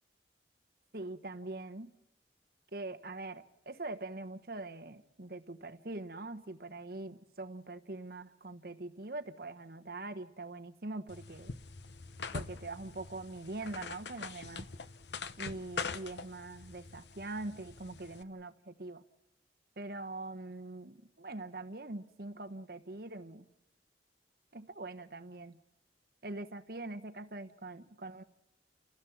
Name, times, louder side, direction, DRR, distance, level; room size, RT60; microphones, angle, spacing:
voice 1, 0.9-1.9 2.7-11.5 12.3-14.7 15.4-19.0 19.8-23.4 24.5-25.6 26.2-28.2, right 2 dB, 55° right, 1.1 m, -43 dB
sound 1, 11.1-18.2, left 4 dB, 75° left, 0.9 m, -44 dB
29.5 x 16.0 x 7.2 m
head